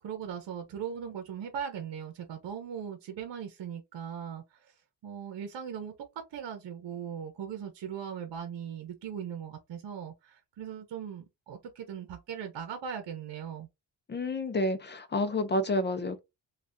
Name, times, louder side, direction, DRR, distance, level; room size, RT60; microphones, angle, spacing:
voice 1, 0.0-4.7 5.0-5.9 6.3-13.7, right 8 dB, 70° right, 0.9 m, -39 dB
voice 2, 14.1-16.2, left 1 dB, 25° left, 0.6 m, -29 dB
3.3 x 2.4 x 2.6 m
cardioid pair, 105°, 44 cm